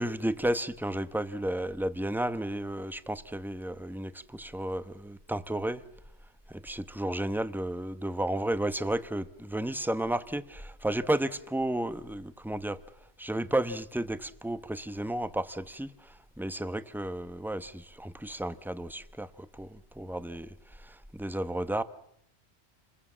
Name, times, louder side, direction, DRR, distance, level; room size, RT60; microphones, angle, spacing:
voice 1, 0.0-5.8 6.5-12.8 13.2-21.8, right 1 dB, ahead, 0.8 m, -33 dB
29.0 x 21.5 x 7.4 m
omnidirectional pair, 1.2 m